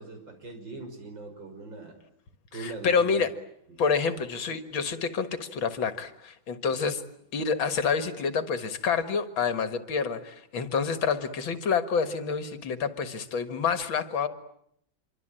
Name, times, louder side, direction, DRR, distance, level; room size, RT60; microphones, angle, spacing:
voice 1, 0.0-1.9 2.5-3.2 3.7-3.8 6.7-6.8, right 3 dB, 65° right, 4 dB, 6.3 m, -41 dB
voice 2, 2.5-3.3 3.8-7.0 7.3-14.3, left 5 dB, 75° left, 10 dB, 2.5 m, -28 dB
26.5 x 24.5 x 9.0 m, 0.73 s
omnidirectional pair, 2.2 m